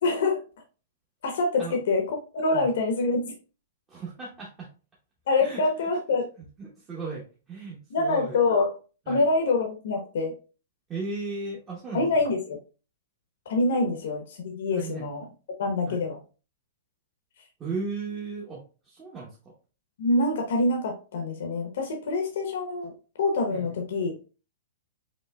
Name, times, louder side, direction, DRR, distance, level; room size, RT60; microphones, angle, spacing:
voice 1, 0.0-0.4 1.2-3.3 5.3-6.3 7.9-8.7 9.1-10.3 11.9-12.6 13.5-15.2 15.6-16.2 20.0-22.9 23.2-24.2, left 3 dB, 60° left, 2 dB, 0.9 m, -25 dB
voice 2, 3.9-4.7 5.4-5.7 6.6-8.4 9.1-9.2 10.9-12.2 14.7-15.1 15.9-16.0 17.6-19.3 23.5-23.7, right 4 dB, 15° right, -5 dB, 0.9 m, -36 dB
5.2 x 3.2 x 2.2 m, 0.34 s
hypercardioid pair, 170°, 0 cm